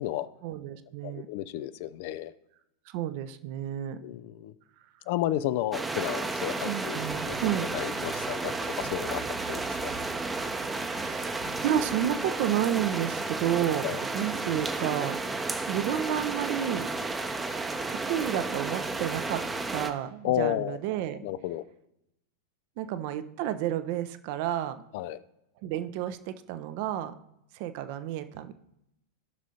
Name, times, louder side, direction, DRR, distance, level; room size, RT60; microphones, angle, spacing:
voice 1, 0.4-1.3 2.9-4.0 6.6-7.7 10.9-13.9 14.1-15.2 15.7-16.9 17.9-19.4 19.7-21.2 22.8-24.8 25.6-27.1 27.5-28.5, right 11 dB, 45° right, 11 dB, 0.6 m, -31 dB
voice 2, 1.0-2.3 4.0-4.5 5.1-7.0 7.2-7.4 7.7-9.9 13.8-14.0 20.2-20.8 21.2-21.6 24.9-25.2, left 13 dB, 50° left, 15 dB, 0.4 m, -32 dB
sound 1, 5.7-19.9, right 3 dB, 10° right, 0.7 m, -32 dB
sound 2, 7.0-12.6, equal, 65° right, 1.9 m, -49 dB
16.5 x 6.1 x 2.8 m, 0.84 s
figure-of-eight pair, 90°, 0 cm